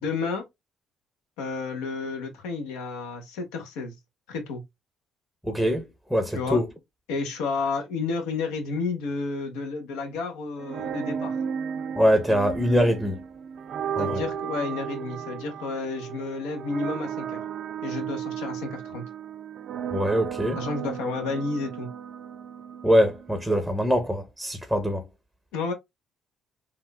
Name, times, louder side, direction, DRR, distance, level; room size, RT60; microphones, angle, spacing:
voice 1, 0.0-0.4 1.4-3.9 4.3-4.6 6.3-6.6 7.1-11.4 14.0-17.4 17.8-19.0 20.5-21.9 25.5-25.7, left 4 dB, 90° left, 0.9 m, -31 dB
voice 2, 5.4-6.7 12.0-13.2 14.0-14.2 19.9-20.6 22.8-25.0, equal, ahead, 0.6 m, -23 dB
sound 1, 10.6-23.5, right 8 dB, 60° right, 0.3 m, -34 dB
3.6 x 2.4 x 2.2 m
supercardioid pair, 75°, 0 cm